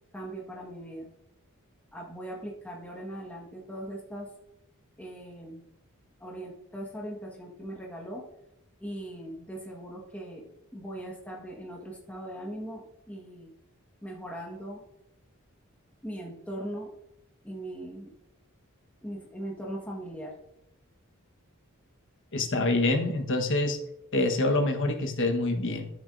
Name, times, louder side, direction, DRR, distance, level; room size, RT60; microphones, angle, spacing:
voice 1, 0.1-1.1 1.9-4.3 5.0-5.7 6.2-8.2 8.8-10.5 10.7-13.5 14.0-14.8 16.0-16.9 17.4-18.1 19.0-20.3, right 1 dB, 5° left, -2 dB, 1.4 m, -39 dB
voice 2, 22.3-23.8 24.1-25.9, left 2 dB, 60° left, 3 dB, 1.3 m, -26 dB
12.5 x 7.1 x 2.6 m, 0.84 s
head